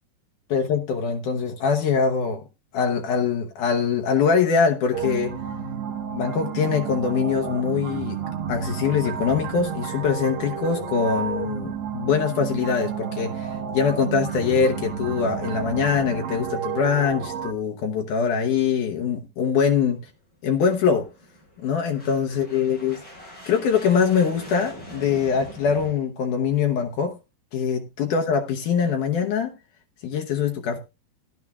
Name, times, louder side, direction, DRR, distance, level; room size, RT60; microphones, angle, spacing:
voice 1, 0.5-2.5 2.7-5.3 6.1-8.2 8.5-20.0 20.4-21.1 21.6-23.0 23.5-27.1 27.5-29.5 30.0-30.8, left 6 dB, 80° left, 1.8 m, -23 dB
sound 1, 4.9-17.5, right 7 dB, 65° right, 3.0 m, -31 dB
sound 2, 19.9-25.9, equal, 25° left, 8.7 m, -43 dB
16.5 x 11.0 x 2.3 m
omnidirectional pair, 4.8 m